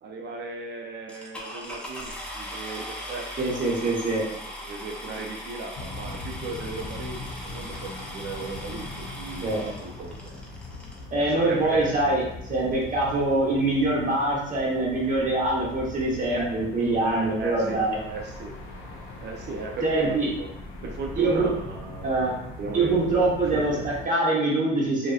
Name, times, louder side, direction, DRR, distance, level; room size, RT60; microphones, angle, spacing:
voice 1, 0.0-3.5 4.6-10.4 11.2-12.0 16.3-16.5 17.0-18.6 19.2-20.5 20.8-22.3 22.6-23.9, right 3 dB, 60° right, 1 dB, 0.5 m, -36 dB
sound 1, 1.1-11.0 11.8-11.9 12.4-12.5 12.7-13.0, equal, 5° left, 0.6 m, -39 dB
voice 2, 3.4-4.3 9.4-9.6 11.1-12.2 12.5-18.0 19.8-20.3 21.2-21.5 22.0-22.3 22.7-25.1, right 2 dB, 40° right, -4 dB, 1.0 m, -24 dB
sound 2, 5.8-24.1, left 2 dB, 90° left, 0.5 m, -40 dB
2.6 x 2.2 x 2.3 m, 0.77 s
cardioid pair, 90°, 20 cm